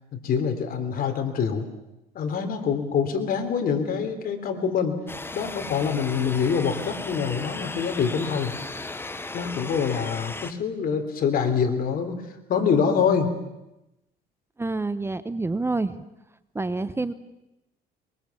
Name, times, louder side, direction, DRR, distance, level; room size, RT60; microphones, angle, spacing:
voice 1, 0.1-1.7 2.1-5.0 5.3-8.5 9.3-13.3, left 6 dB, 60° left, 7 dB, 3.4 m, -25 dB
sound 1, 5.1-10.5, left 2 dB, 15° left, 1.1 m, -36 dB
voice 2, 14.6-16.0 16.5-17.1, right 3 dB, 15° right, 13 dB, 0.9 m, -27 dB
23.0 x 23.0 x 7.2 m, 0.93 s
cardioid pair, 110°, 17 cm